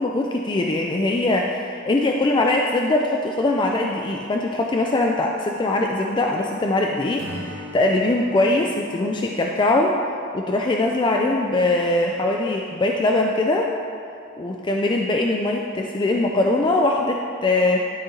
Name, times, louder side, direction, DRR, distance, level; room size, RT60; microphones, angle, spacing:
voice 1, 0.0-10.0 10.3-13.7 14.4-17.8, left 2 dB, 20° left, 0 dB, 0.3 m, -21 dB
Acoustic guitar / Strum, 7.2-11.1, left 1 dB, 70° right, 1.3 m, -41 dB
11.5 x 4.2 x 3.8 m, 2.5 s
head